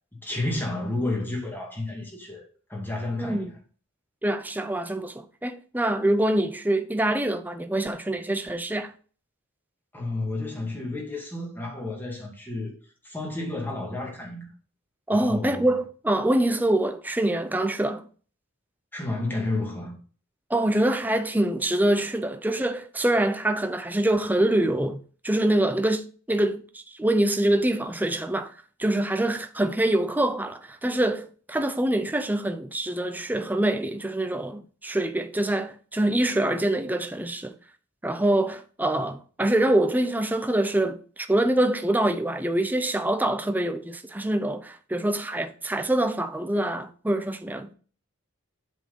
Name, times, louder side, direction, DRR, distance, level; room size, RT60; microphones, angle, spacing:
voice 1, 0.2-3.5 9.9-12.7 13.0-14.5 15.1-15.7 18.9-20.0, left 2 dB, 10° left, 2.2 m, -31 dB
voice 2, 3.2-3.5 4.2-8.9 15.1-18.0 20.5-28.5 28.8-37.6 38.0-47.7, right 1 dB, 10° right, 0.6 m, -25 dB
7.7 x 4.5 x 5.4 m
head